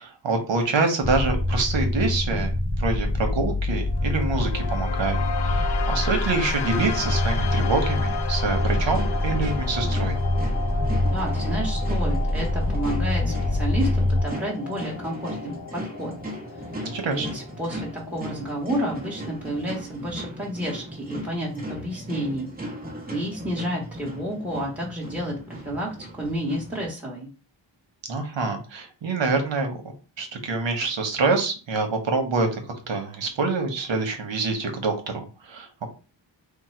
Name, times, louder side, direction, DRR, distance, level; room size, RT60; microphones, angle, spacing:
voice 1, 0.0-2.5 2.8-10.2 16.8-17.4 28.1-29.8 30.2-32.6 32.9-35.9, right 3 dB, 75° right, 4 dB, 1.0 m, -26 dB
sound 1, 1.0-14.2, left 1 dB, 15° left, 0.3 m, -25 dB
sound 2, 3.7-19.7, left 5 dB, 60° left, 0.6 m, -35 dB
sound 3, 8.6-26.8, equal, 20° right, 0.9 m, -37 dB
voice 2, 11.0-16.1 17.0-22.5 23.1-27.3, equal, 5° right, -4 dB, 1.1 m, -31 dB
3.7 x 2.2 x 4.3 m, 0.33 s
wide cardioid pair, 130°, 45 cm